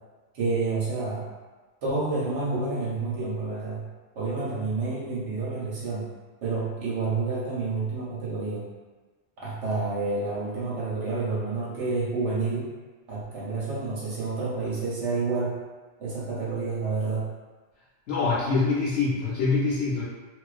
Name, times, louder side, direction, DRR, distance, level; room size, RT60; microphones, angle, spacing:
voice 1, 0.3-1.3 1.8-3.8 4.1-6.1 6.4-8.7 9.4-12.7 13.1-15.6 16.0-17.3, right 3 dB, 80° right, -7 dB, 1.0 m, -29 dB
voice 2, 18.1-20.0, left 4 dB, 80° left, -9 dB, 0.9 m, -24 dB
2.4 x 2.2 x 2.3 m, 1.3 s
omnidirectional pair, 1.2 m